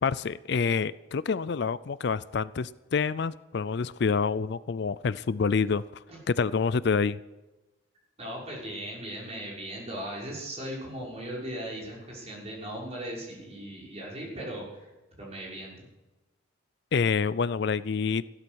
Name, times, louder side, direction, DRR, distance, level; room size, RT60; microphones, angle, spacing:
voice 1, 0.0-7.2 16.9-18.2, left 5 dB, 55° left, 18 dB, 0.4 m, -27 dB
voice 2, 8.2-15.8, right 1 dB, 30° right, -4 dB, 5.8 m, -38 dB
15.5 x 13.0 x 6.3 m, 1.1 s
head